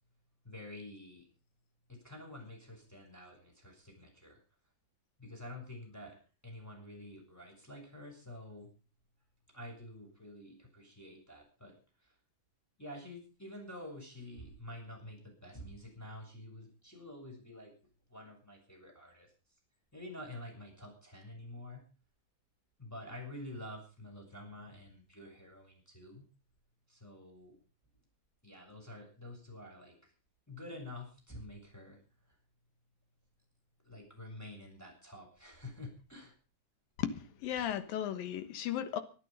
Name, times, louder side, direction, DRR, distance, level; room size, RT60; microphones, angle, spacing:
voice 1, 0.4-1.3 1.9-4.4 5.2-6.2 6.4-8.7 9.5-11.8 12.0-12.2 12.8-17.7 18.1-19.3 19.9-21.8 22.8-26.2 26.9-27.6 28.4-30.1 30.5-32.4 33.8-36.4, left 1 dB, 5° left, -1 dB, 7.1 m, -48 dB
voice 2, 37.0-39.0, left 10 dB, 90° left, 11 dB, 3.1 m, -35 dB
25.0 x 9.2 x 5.5 m, 0.37 s
omnidirectional pair, 4.0 m